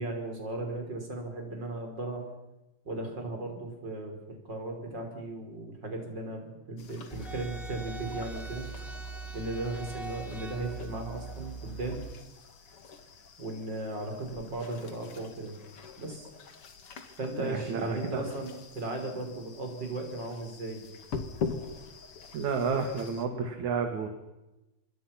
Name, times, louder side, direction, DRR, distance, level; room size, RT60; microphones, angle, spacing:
voice 1, 0.0-2.3 2.9-8.7 9.3-12.0 13.4-15.6 16.0-16.3 17.2-20.8, right 2 dB, 25° right, 3 dB, 5.6 m, -36 dB
sound 1, 6.8-23.3, left 5 dB, 45° left, 2.3 m, -44 dB
sound 2, 7.1-12.1, right 3 dB, ahead, 1.4 m, -41 dB
voice 2, 17.4-18.3 22.3-24.1, right 5 dB, 50° right, 6 dB, 3.0 m, -31 dB
26.0 x 23.0 x 5.9 m, 0.97 s
omnidirectional pair, 4.9 m